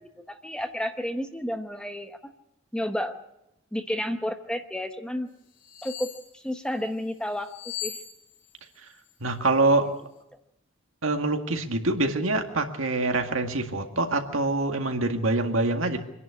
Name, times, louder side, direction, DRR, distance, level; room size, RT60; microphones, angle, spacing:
voice 1, 0.3-2.2 2.7-3.2 3.7-5.3 5.8-8.0, left 1 dB, 5° left, 7 dB, 0.9 m, -31 dB
sound 1, 5.6-6.3 7.4-8.7 8.9-9.1, left 10 dB, 70° left, 5.8 m, -38 dB
voice 2, 9.2-9.9 11.0-16.0, right 2 dB, 85° right, 4 dB, 2.0 m, -25 dB
25.0 x 11.0 x 9.8 m, 0.88 s
head